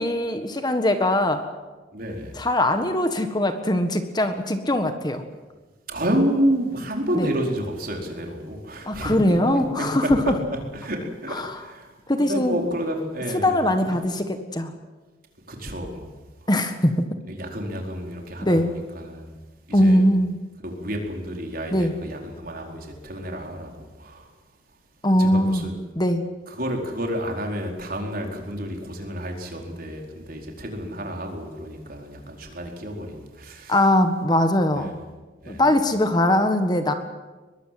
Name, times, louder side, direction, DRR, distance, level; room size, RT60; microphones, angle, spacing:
voice 1, 0.0-1.5 2.4-5.2 7.1-7.3 8.9-10.3 11.3-11.5 12.1-12.6 13.4-14.7 16.5-17.2 18.4-18.7 19.7-20.3 21.7-21.9 25.0-25.6 26.0-26.2 33.7-35.0 35.5-36.9, left 1 dB, 20° left, 7 dB, 1.6 m, -21 dB
voice 2, 1.9-2.4 5.9-9.1 9.5-10.3 10.7-11.9 12.2-14.0 15.5-16.2 16.4-16.5 17.3-19.4 19.7-20.1 20.6-24.3 25.2-25.8 26.5-33.8 34.7-35.0 35.4-35.6, equal, 50° right, 2 dB, 4.6 m, -30 dB
23.0 x 22.0 x 7.9 m, 1.3 s
head